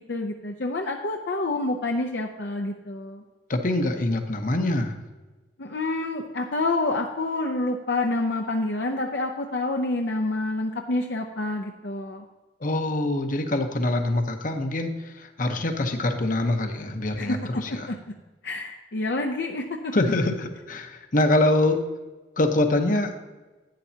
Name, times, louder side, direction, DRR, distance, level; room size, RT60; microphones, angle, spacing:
voice 1, 0.0-3.2 5.6-12.2 17.2-17.4 17.9-18.0 18.4-19.9, left 2 dB, 65° left, 2 dB, 0.7 m, -28 dB
voice 2, 3.5-4.9 12.6-17.9 19.9-21.9 22.4-23.1, left 2 dB, 50° left, 6 dB, 1.0 m, -24 dB
11.5 x 9.1 x 2.8 m, 1.2 s
head